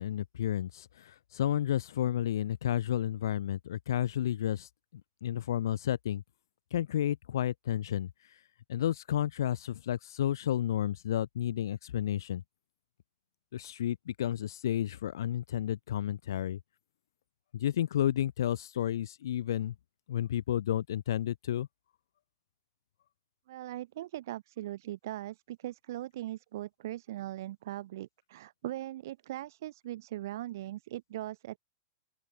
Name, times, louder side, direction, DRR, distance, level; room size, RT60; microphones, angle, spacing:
voice 1, 0.0-4.7 5.2-6.2 6.7-8.1 8.7-12.4 13.5-16.6 17.5-19.7 20.1-21.7, left 11 dB, 80° left, 0.3 m, -31 dB
voice 2, 23.5-31.6, right 14 dB, 60° right, 0.7 m, -40 dB
open air
supercardioid pair, 150°, 2 cm